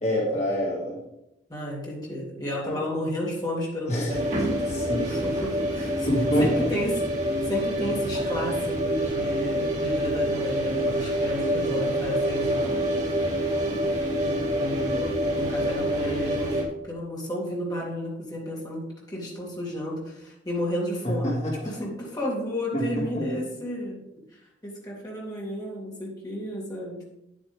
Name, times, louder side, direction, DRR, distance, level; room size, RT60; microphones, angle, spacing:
voice 1, 0.0-1.0 2.6-2.8 3.9-4.1 4.7-5.1 6.1-6.7 21.0-21.5 22.7-23.2, equal, 40° left, -3 dB, 2.2 m, -26 dB
voice 2, 1.5-4.2 5.1-6.1 6.4-7.0 7.5-12.9 14.6-24.0 24.3-27.0, equal, 20° left, -4 dB, 2.5 m, -32 dB
sound 1, 4.1-16.6, equal, 40° right, 2.2 m, -26 dB
9.1 x 8.6 x 3.5 m, 0.85 s
head